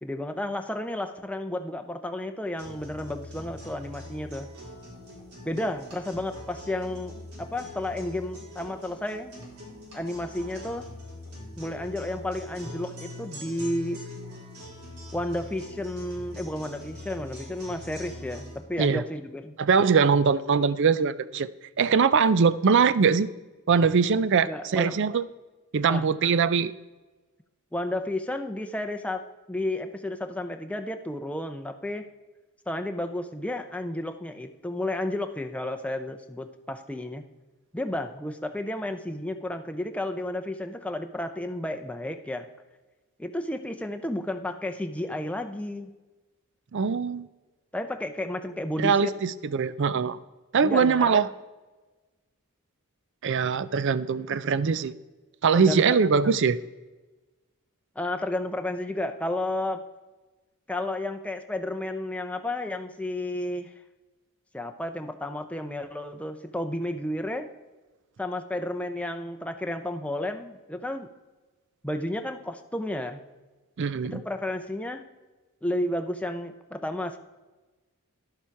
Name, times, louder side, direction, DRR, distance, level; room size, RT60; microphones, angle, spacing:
voice 1, 0.0-4.5 5.4-7.1 7.4-9.3 9.9-10.9 11.6-14.0 15.1-19.5 24.4-25.0 25.9-26.1 27.7-32.1 32.7-37.2 37.7-42.5 43.2-45.9 47.7-49.1 50.6-51.2 55.6-56.4 58.0-59.8 60.7-63.7 64.5-67.5 68.2-71.1 71.8-73.2 74.0-75.0 75.6-77.2, left 1 dB, 5° left, 6 dB, 0.6 m, -32 dB
sound 1, 2.6-18.6, left 1 dB, 85° right, 3.8 m, -43 dB
voice 2, 19.6-21.5 21.8-23.3 23.7-25.2 25.7-26.7 46.7-47.3 48.8-50.2 50.5-51.3 53.2-54.9 55.4-56.6 73.8-74.2, right 5 dB, 55° right, 16 dB, 0.4 m, -22 dB
11.5 x 7.2 x 4.6 m, 1.2 s
head